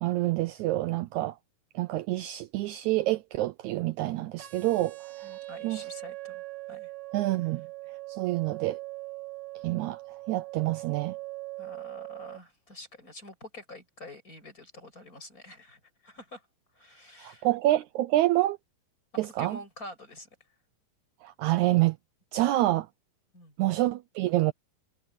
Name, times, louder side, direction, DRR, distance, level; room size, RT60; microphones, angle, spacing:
voice 1, 0.0-1.4 1.7-5.3 5.6-5.9 7.1-7.7 8.1-8.8 9.6-10.0 10.3-11.1 17.2-18.6 19.2-19.6 21.2-22.0 22.3-22.9 23.6-24.5, right 16 dB, 85° right, 1.6 m, -27 dB
sound 1, 4.4-12.4, right 20 dB, 70° right, 3.8 m, -41 dB
voice 2, 5.2-6.9 11.6-16.4 16.7-17.5 19.2-20.3 23.3-23.5, left 1 dB, 20° left, 8.0 m, -47 dB
omnidirectional pair, 4.1 m